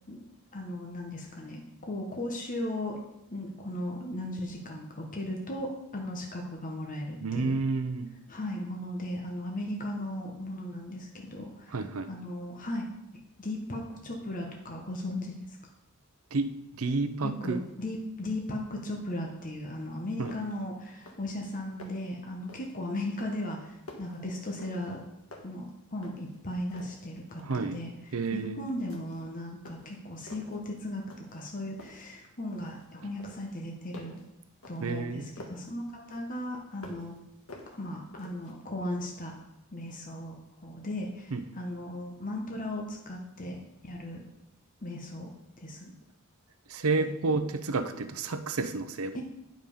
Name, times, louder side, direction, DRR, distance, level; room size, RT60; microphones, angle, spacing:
voice 1, 0.5-3.0 3.3-7.5 8.3-11.8 12.1-12.9 13.4-15.4 17.2-25.0 25.4-27.9 28.3-34.2 34.7-37.2 37.8-39.3 39.7-40.4 40.6-43.6 43.8-44.2 44.8-45.3 45.6-45.9 47.0-47.1 49.1-49.2, left 1 dB, 40° left, 0 dB, 1.2 m, -37 dB
voice 2, 7.2-8.1 11.7-12.1 16.3-17.6 20.2-20.3 27.4-27.8 28.1-28.7 34.8-35.3 41.3-41.4 46.7-49.2, right 3 dB, 85° right, 11 dB, 0.7 m, -30 dB
sound 1, 19.8-19.9 20.2-20.6 20.9-21.4 21.6-22.1 22.5-22.8 23.2-25.0 25.3-26.4 26.7-27.8 28.2-28.5 28.9-29.3 29.6-30.6 31.1-31.5 31.8-32.9 33.2-35.7 36.1-37.2 37.5-38.5, left 1 dB, 75° left, 1.5 m, -50 dB
9.2 x 5.2 x 5.5 m, 0.88 s
head